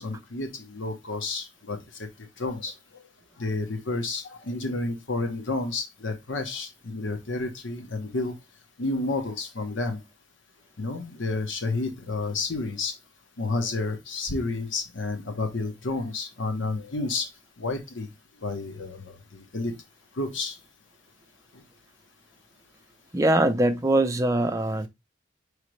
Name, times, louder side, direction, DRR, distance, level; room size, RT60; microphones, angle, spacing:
voice 1, 0.0-3.1 3.4-8.4 8.8-10.0 10.8-13.0 13.4-18.1 18.3-19.7 20.1-20.6 21.5-21.6, left 3 dB, 80° left, 1.0 m, -31 dB
voice 2, 23.1-24.9, right 1 dB, 15° right, 0.5 m, -22 dB
5.0 x 3.2 x 3.1 m
head